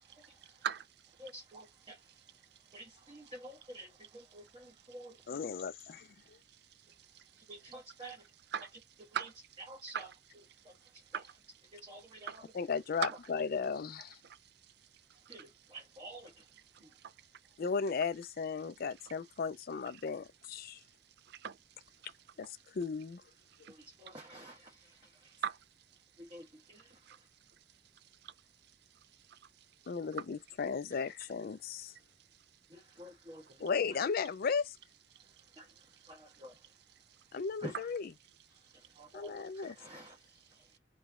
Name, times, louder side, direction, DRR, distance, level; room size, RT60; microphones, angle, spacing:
voice 1, 0.1-0.9 1.9-2.0 3.3-3.4 5.2-5.3 7.0-7.4 8.5-8.7 9.1-9.6 9.8-10.2 11.1-11.4 12.2-12.4 13.0-13.2 14.2-14.4 15.3-15.4 16.7-17.1 19.9-20.0 21.2-21.6 22.0-22.1 23.5-23.7 25.3-25.6 27.0-27.2 28.2-28.3 29.3-29.5 33.4-33.6 35.8-36.1 37.7-37.8 39.7-39.8, right 8 dB, 60° right, 0.4 m, -41 dB
voice 2, 1.2-2.0 2.7-5.4 7.5-8.2 9.7-10.1 10.6-10.7 11.7-12.4 15.3-16.3 16.8-16.9 23.7-24.9 26.2-26.9 32.7-33.4 35.6-35.7 36.1-36.5 37.6-37.7 39.0-40.2, right 1 dB, 25° right, 1.0 m, -50 dB
voice 3, 5.3-6.1 12.5-14.2 17.6-20.8 22.4-23.2 29.9-31.9 33.6-34.8 37.3-38.1 39.1-39.8, left 5 dB, 55° left, 0.4 m, -35 dB
3.2 x 3.0 x 3.5 m
head